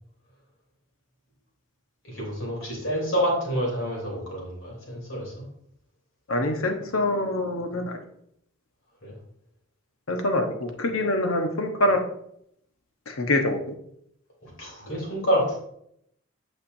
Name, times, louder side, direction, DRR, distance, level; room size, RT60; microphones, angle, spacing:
voice 1, 2.0-5.3 9.0-9.1 14.4-15.6, equal, 65° left, -2 dB, 3.2 m, -28 dB
voice 2, 6.3-8.0 10.1-12.0 13.1-13.6, left 1 dB, 80° left, 5 dB, 1.1 m, -25 dB
8.8 x 6.6 x 2.6 m, 0.72 s
head